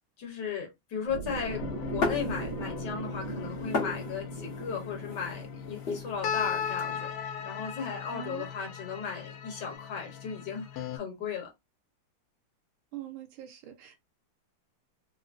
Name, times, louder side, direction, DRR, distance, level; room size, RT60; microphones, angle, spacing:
voice 1, 0.2-1.6 1.9-11.5, left 6 dB, 55° left, 1.6 m, -36 dB
sound 1, 1.1-7.2, right 4 dB, 70° right, 1.5 m, -40 dB
sound 2, 1.5-11.0, left 8 dB, 80° left, 0.9 m, -38 dB
sound 3, 2.0-2.9 3.1-6.8, left 3 dB, 40° left, 0.9 m, -35 dB
voice 2, 8.1-8.5 12.9-14.0, right 14 dB, 90° right, 1.6 m, -43 dB
3.9 x 2.1 x 2.5 m
omnidirectional pair, 2.4 m